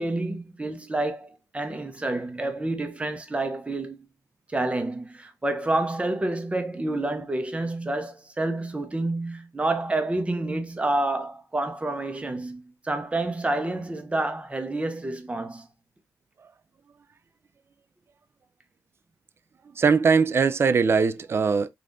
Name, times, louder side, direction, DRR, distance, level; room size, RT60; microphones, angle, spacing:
voice 1, 0.0-4.0 4.5-15.7, right 2 dB, 20° right, 0.7 m, -28 dB
voice 2, 19.8-21.7, right 5 dB, 40° right, 0.3 m, -21 dB
3.4 x 2.4 x 2.6 m
cardioid pair, 80°, 7 cm